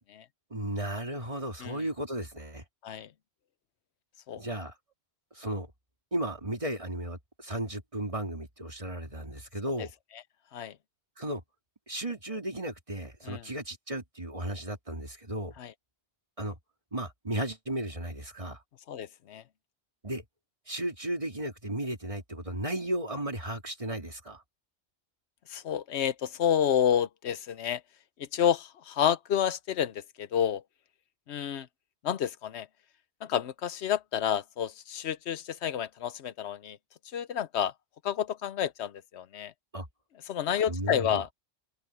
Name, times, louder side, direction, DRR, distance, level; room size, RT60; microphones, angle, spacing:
voice 1, 0.5-2.6 4.4-4.7 5.3-5.7 6.1-9.9 11.2-11.4 11.9-15.5 16.4-16.5 16.9-18.6 20.0-20.2 20.7-24.4 39.7-39.9 40.7-41.2, right 1 dB, 30° right, 3.3 m, -35 dB
voice 2, 18.9-19.4 25.5-27.8 28.2-30.6 31.3-31.7 32.0-32.7 33.2-36.8 37.1-37.7 38.0-39.5 40.3-41.3, left 9 dB, 75° left, 1.0 m, -29 dB
open air
omnidirectional pair, 1.1 m